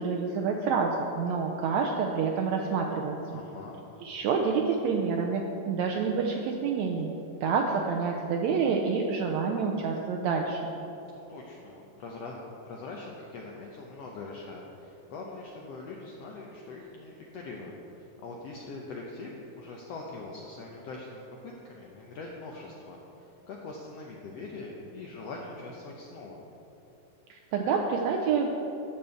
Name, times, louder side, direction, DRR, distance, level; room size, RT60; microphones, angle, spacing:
voice 1, 0.0-3.2 4.0-7.1 7.4-10.7 27.3-28.6, right 5 dB, 80° right, 1 dB, 1.6 m, -28 dB
voice 2, 3.3-3.8 11.1-26.4, left 3 dB, 80° left, -1 dB, 1.4 m, -42 dB
12.0 x 4.4 x 7.6 m, 3.0 s
omnidirectional pair, 3.8 m